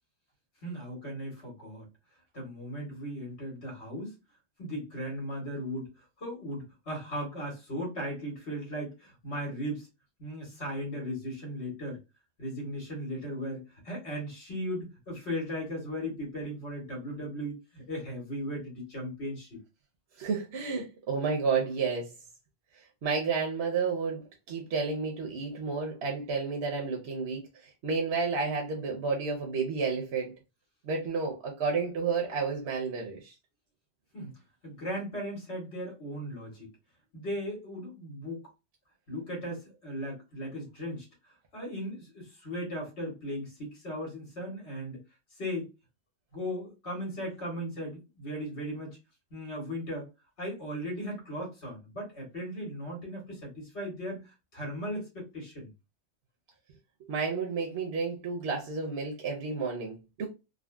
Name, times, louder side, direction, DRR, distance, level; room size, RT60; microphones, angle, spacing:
voice 1, 0.6-1.9 2.3-4.1 4.6-5.9 6.2-9.9 10.2-12.0 12.4-19.6 34.1-34.3 34.6-36.7 37.1-38.5 39.1-41.1 41.5-45.0 45.4-45.7 46.3-49.0 49.3-50.1 50.4-55.7, equal, 75° left, 1.7 m, -37 dB
voice 2, 20.2-22.1 23.0-30.3 30.8-33.3 57.1-60.3, right 4 dB, 70° right, 1.0 m, -31 dB
3.6 x 2.0 x 2.3 m
omnidirectional pair, 1.1 m